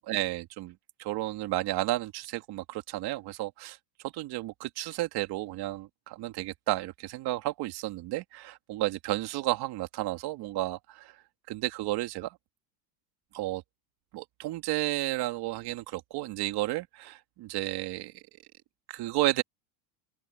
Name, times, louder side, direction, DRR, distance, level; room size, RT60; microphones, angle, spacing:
voice 1, 0.0-3.8 4.1-11.2 11.5-12.4 13.3-13.6 14.1-18.2 18.9-19.4, right 17 dB, 50° right, 2.6 m, -32 dB
open air
supercardioid pair, 140°, 50 cm